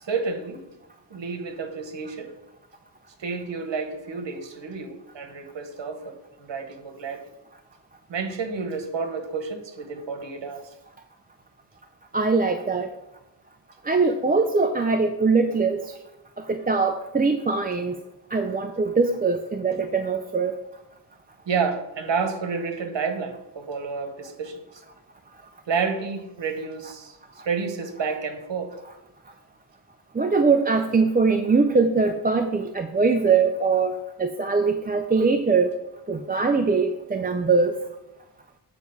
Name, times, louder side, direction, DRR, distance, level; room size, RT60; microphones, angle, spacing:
voice 1, 0.1-0.6 1.1-2.3 3.2-7.3 8.1-10.6 21.5-24.8 25.7-28.7, right 5 dB, 75° right, 7 dB, 1.2 m, -30 dB
voice 2, 12.1-12.9 13.8-15.9 16.4-18.0 18.3-20.6 30.2-35.7 36.1-37.7, right 4 dB, 20° right, 5 dB, 0.4 m, -22 dB
7.5 x 4.6 x 6.8 m, 0.91 s
wide cardioid pair, 175°, 43 cm